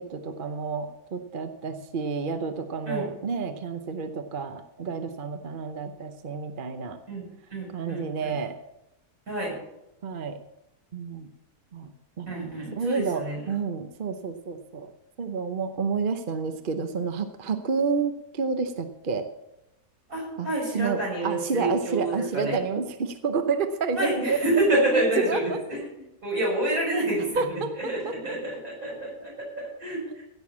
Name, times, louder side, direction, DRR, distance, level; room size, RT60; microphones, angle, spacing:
voice 1, 0.0-7.0 7.7-8.5 10.0-10.4 10.9-11.3 11.7-11.9 12.2-14.9 15.2-19.3 20.4-20.5 20.7-24.4 24.7-25.6 26.9-27.0 27.4-28.1, right 5 dB, 40° right, 8 dB, 0.8 m, -29 dB
voice 2, 7.5-8.3 9.3-9.6 12.3-13.4 20.1-22.6 24.0-25.9 26.2-30.2, right 1 dB, 60° right, -3 dB, 6.8 m, -28 dB
16.5 x 6.5 x 7.2 m, 0.89 s
omnidirectional pair, 1.6 m